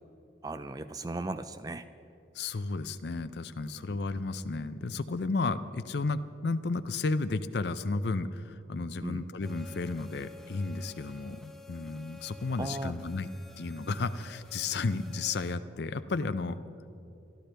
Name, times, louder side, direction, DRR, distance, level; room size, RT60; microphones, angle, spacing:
voice 1, 0.4-1.9 3.9-4.0 9.0-9.2 12.6-12.9, right 2 dB, 20° right, 11 dB, 0.3 m, -37 dB
voice 2, 2.3-13.3 13.6-16.6, left 3 dB, 60° left, 11 dB, 0.5 m, -33 dB
sound 1, 9.4-15.5, left 2 dB, ahead, 0.7 m, -51 dB
26.0 x 12.0 x 3.4 m, 2.8 s
head